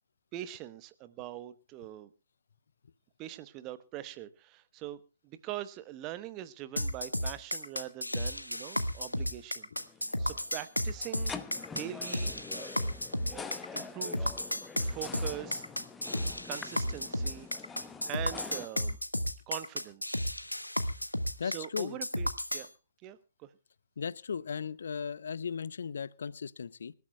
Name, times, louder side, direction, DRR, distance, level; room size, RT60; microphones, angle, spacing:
voice 1, 0.3-2.1 3.2-9.7 10.2-12.7 13.3-15.7 16.4-17.5 18.1-19.0 19.5-20.2 21.4-22.7 23.0-23.5, right 13 dB, 20° right, 14 dB, 1.0 m, -43 dB
sound 1, 6.8-22.7, left 1 dB, 85° left, 1.4 m, -33 dB
sound 2, 9.8-18.7, left 5 dB, 10° left, 0.9 m, -46 dB
voice 2, 21.4-22.0 24.0-26.9, left 6 dB, 55° left, 21 dB, 0.7 m, -36 dB
26.0 x 13.0 x 2.3 m, 0.30 s
figure-of-eight pair, 130°, 0 cm